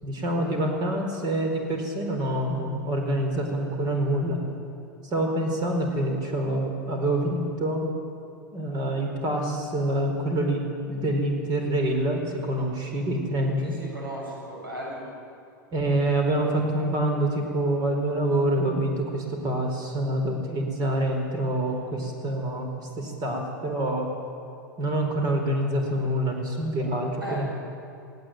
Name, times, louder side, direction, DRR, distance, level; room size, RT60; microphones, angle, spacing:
voice 1, 0.0-4.4 5.0-7.9 8.5-13.7 15.7-24.1 24.8-27.5, right 1 dB, 40° right, 3 dB, 4.6 m, -26 dB
voice 2, 13.6-15.1 27.2-27.5, right 1 dB, 90° right, -2 dB, 7.3 m, -36 dB
18.5 x 17.5 x 9.2 m, 2.6 s
hypercardioid pair, 95°, 11 cm